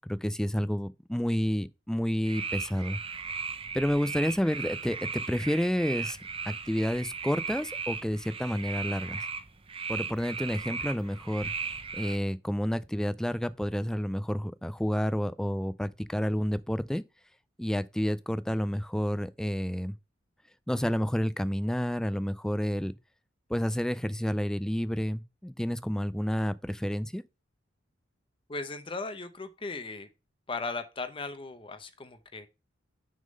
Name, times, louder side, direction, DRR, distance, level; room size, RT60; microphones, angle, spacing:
voice 1, 0.1-3.0 3.7-6.2 6.5-9.2 9.9-11.5 11.9-17.0 17.6-19.9 20.7-23.0 23.5-27.2, equal, 5° left, 0.3 m, -30 dB
sound 1, 2.2-12.2, right 5 dB, 30° right, 0.7 m, -37 dB
voice 2, 28.5-30.1 30.5-32.5, left 3 dB, 30° left, 0.7 m, -37 dB
6.4 x 3.7 x 5.2 m
head